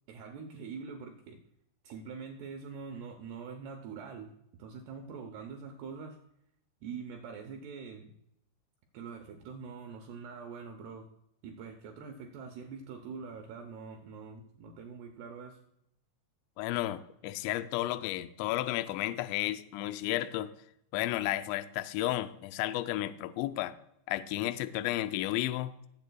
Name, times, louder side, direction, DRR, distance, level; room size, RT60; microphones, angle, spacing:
voice 1, 0.1-1.4 1.8-4.3 4.6-6.2 6.8-8.1 8.9-11.1 11.4-15.6, right 5 dB, 80° right, 3 dB, 2.4 m, -44 dB
voice 2, 16.6-20.5 20.9-23.8 24.1-25.7, left 15 dB, 85° left, 12 dB, 2.6 m, -33 dB
17.5 x 8.1 x 2.3 m, 0.77 s
omnidirectional pair, 5.6 m